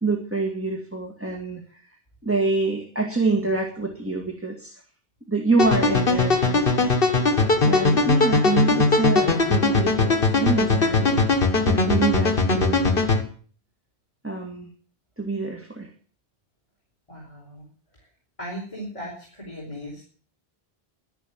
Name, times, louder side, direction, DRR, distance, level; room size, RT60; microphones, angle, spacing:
voice 1, 0.0-1.9 2.2-4.8 5.3-6.9 7.6-11.4 11.6-13.0 14.2-14.7 15.2-15.9, right 3 dB, 10° right, 1 dB, 1.9 m, -26 dB
sound 1, 5.6-13.2, left 3 dB, 60° left, 1.9 m, -20 dB
voice 2, 17.1-17.7 18.0-18.1 18.4-20.0, equal, 30° left, -3 dB, 4.4 m, -37 dB
12.0 x 10.5 x 7.3 m, 0.44 s
omnidirectional pair, 1.1 m